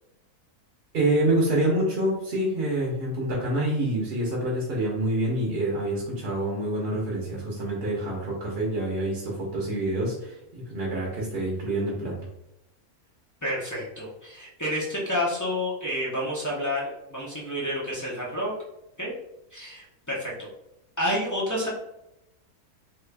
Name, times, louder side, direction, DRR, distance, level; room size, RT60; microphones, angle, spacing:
voice 1, 0.9-12.3, right 1 dB, 50° right, -4 dB, 0.9 m, -27 dB
voice 2, 13.4-18.5 19.0-19.1 19.5-20.5 21.0-21.7, left 1 dB, 25° left, -6 dB, 0.4 m, -29 dB
3.2 x 2.3 x 3.3 m, 0.86 s
omnidirectional pair, 1.6 m